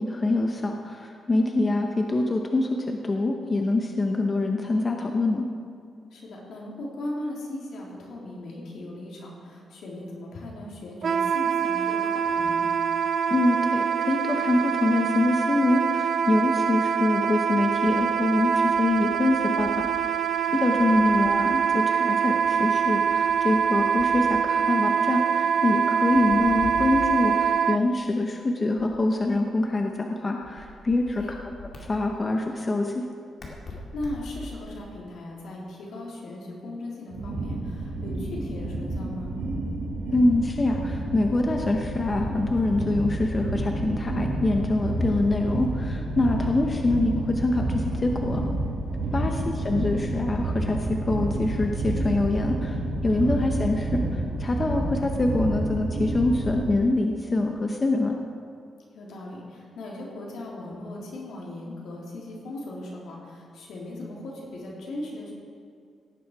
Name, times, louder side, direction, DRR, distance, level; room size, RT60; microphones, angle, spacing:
voice 1, 0.0-5.4 13.3-20.2 20.5-31.2 31.9-33.0 40.1-48.4 49.1-58.2, left 2 dB, 25° left, 2 dB, 0.8 m, -25 dB
voice 2, 1.3-1.6 6.1-12.7 20.6-21.0 31.0-31.3 33.7-39.4 49.0-49.5 53.1-53.5 58.9-65.3, left 1 dB, 75° left, -3 dB, 3.3 m, -38 dB
Wind instrument woodwind instrument, 11.0-27.8, right 7 dB, 50° right, 0.4 m, -24 dB
sound 1, 17.7-20.0 20.3-21.5 22.4-24.6 26.1-27.4 28.8-29.8 30.4-31.9 33.4-34.8, left 2 dB, 40° left, 2.4 m, -44 dB
sound 2, 37.1-56.6, right 2 dB, 85° right, 2.4 m, -29 dB
17.0 x 9.3 x 4.7 m, 2.3 s
wide cardioid pair, 160°, 0 cm